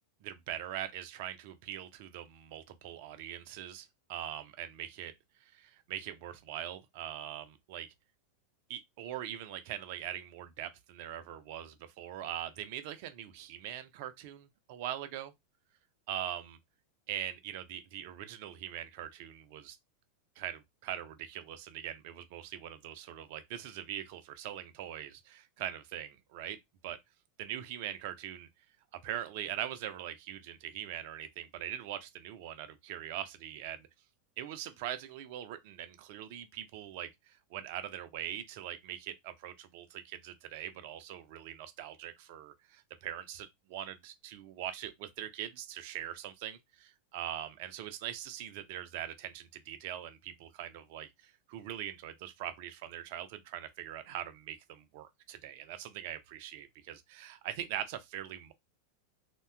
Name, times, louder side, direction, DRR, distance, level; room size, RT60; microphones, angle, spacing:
voice 1, 0.2-5.1 5.4-7.9 8.7-15.3 16.1-16.6 17.1-19.8 20.4-26.6 26.8-27.0 27.4-28.5 28.9-33.9 34.4-58.5, right 11 dB, 50° right, 0.4 m, -42 dB
2.7 x 2.2 x 2.2 m
figure-of-eight pair, 90°, 0 cm